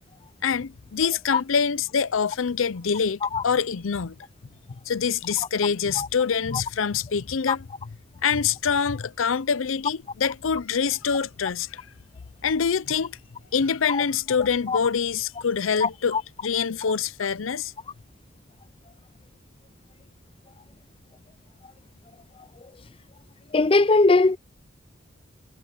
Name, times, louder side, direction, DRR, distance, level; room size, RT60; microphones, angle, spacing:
voice 1, 0.4-4.2 4.9-7.6 8.2-11.9 12.4-13.2 13.5-17.7, left 6 dB, 80° left, 0.6 m, -25 dB
voice 2, 15.8-16.2 23.5-24.4, left 3 dB, 25° left, 0.5 m, -20 dB
head